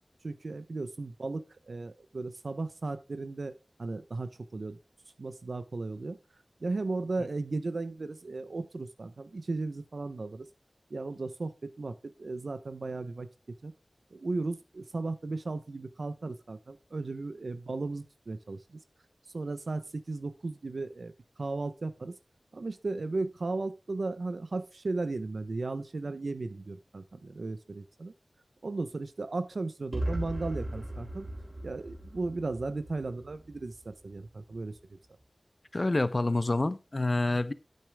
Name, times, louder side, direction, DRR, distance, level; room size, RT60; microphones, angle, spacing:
voice 1, 0.2-3.5 3.8-4.8 5.2-6.2 6.6-10.5 10.9-13.3 13.6-13.7 14.1-18.8 19.3-21.1 21.4-22.1 22.5-28.1 28.6-31.3 31.6-35.0, right 3 dB, 80° right, 0.8 m, -35 dB
sound 1, 29.9-33.8, right 1 dB, 25° right, 3.3 m, -37 dB
voice 2, 35.7-37.5, left 2 dB, 45° left, 0.7 m, -27 dB
9.1 x 8.8 x 3.5 m
wide cardioid pair, 55°, 0 cm